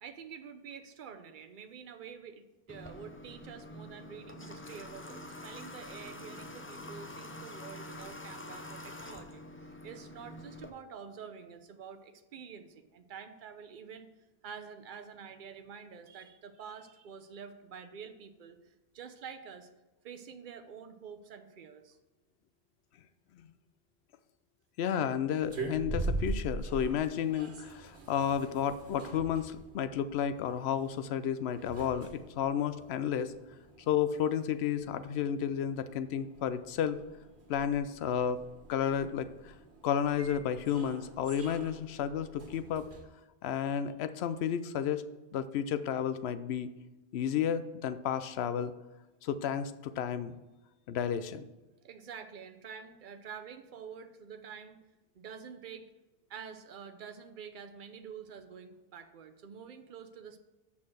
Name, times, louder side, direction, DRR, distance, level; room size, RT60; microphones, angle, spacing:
voice 1, 0.0-14.1 14.4-19.7 20.0-22.0 51.8-54.8 55.1-55.9 56.3-60.4, right 7 dB, 55° right, 8 dB, 0.8 m, -48 dB
Water / Water tap faucet, 2.7-10.7, left 1 dB, 15° left, 0.4 m, -46 dB
voice 2, 24.8-33.3 33.9-37.0 37.5-38.4 38.7-39.5 39.8-42.9 43.4-45.0 45.3-46.7 47.1-48.7 49.2-50.4 50.9-51.5, left 8 dB, 80° left, 13 dB, 0.8 m, -32 dB
sound 1, 25.4-43.0, right 2 dB, 90° right, 1.5 m, -43 dB
6.5 x 5.9 x 6.2 m, 1.1 s
omnidirectional pair, 1.1 m